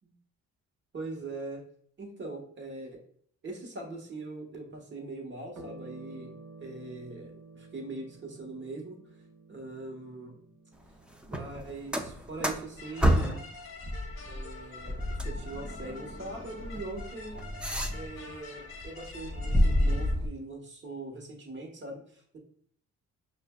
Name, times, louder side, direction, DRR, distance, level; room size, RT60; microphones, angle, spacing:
voice 1, 0.9-1.6 2.0-3.0 3.4-6.3 6.6-9.0 9.5-10.4 11.3-13.4 14.2-17.4 17.9-22.4, right 2 dB, 40° right, 1 dB, 1.3 m, -41 dB
sound 1, 5.5-14.4, right 2 dB, 65° right, 1.0 m, -52 dB
sound 2, 11.2-13.5 13.8-18.3 18.7-20.3, equal, 5° right, 0.4 m, -30 dB
sound 3, 12.8-20.2, left 4 dB, 45° left, 1.0 m, -47 dB
5.7 x 2.6 x 2.2 m, 0.63 s
cardioid pair, 90°, 30 cm